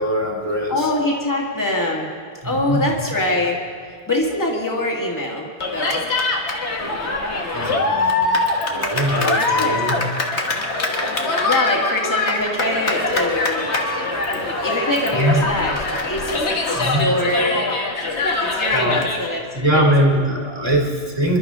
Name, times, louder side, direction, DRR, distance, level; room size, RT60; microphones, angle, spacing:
voice 1, 0.0-0.9 2.4-2.9 7.5-10.0 15.1-15.4 16.7-17.0 18.7-19.0 19.5-21.4, equal, 30° right, -1 dB, 3.0 m, -22 dB
voice 2, 0.7-2.1 2.4-3.6 4.1-6.0 9.4-10.1 11.4-13.6 14.6-15.8 16.1-17.7 18.4-19.4 19.7-19.9, left 1 dB, 15° left, -2 dB, 2.2 m, -23 dB
Cheering, 5.6-19.3, left 3 dB, 70° left, 1.8 m, -23 dB
26.5 x 12.0 x 3.7 m, 2.1 s
omnidirectional pair, 1.2 m